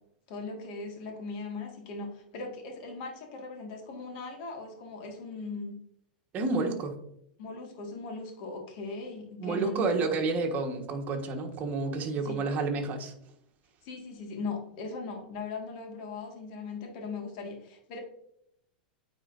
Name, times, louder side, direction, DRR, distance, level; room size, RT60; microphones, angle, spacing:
voice 1, 0.3-5.8 7.4-9.9 12.2-12.4 13.8-18.0, left 3 dB, 60° left, 2 dB, 1.9 m, -39 dB
voice 2, 6.3-7.0 9.4-13.1, right 3 dB, 35° right, 2 dB, 1.4 m, -30 dB
9.2 x 4.0 x 2.6 m, 0.74 s
hypercardioid pair, 110°, 5 cm